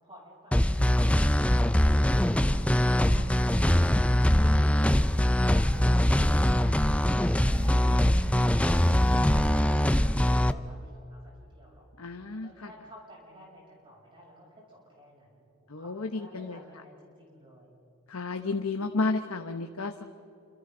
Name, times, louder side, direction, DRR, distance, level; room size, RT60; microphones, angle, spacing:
voice 1, 0.0-7.0 8.5-11.8 12.3-15.5 15.8-17.7, equal, 25° right, -4 dB, 7.2 m, -53 dB
sound 1, 0.5-10.5, left 1 dB, 5° left, 0.5 m, -23 dB
voice 2, 12.0-12.5 15.7-16.6 18.1-20.1, left 3 dB, 75° left, 5 dB, 1.1 m, -32 dB
29.5 x 27.5 x 3.9 m, 2.8 s
head